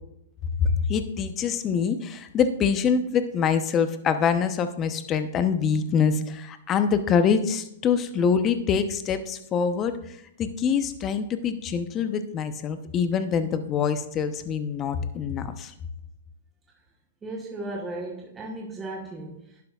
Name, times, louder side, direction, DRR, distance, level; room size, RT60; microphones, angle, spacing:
voice 1, 0.6-9.9 10.4-15.7, left 6 dB, 25° left, 0.9 m, -25 dB
voice 2, 17.2-19.6, right 2 dB, 15° right, 1.2 m, -36 dB
11.5 x 10.5 x 2.5 m
hypercardioid pair, 130°, 0 cm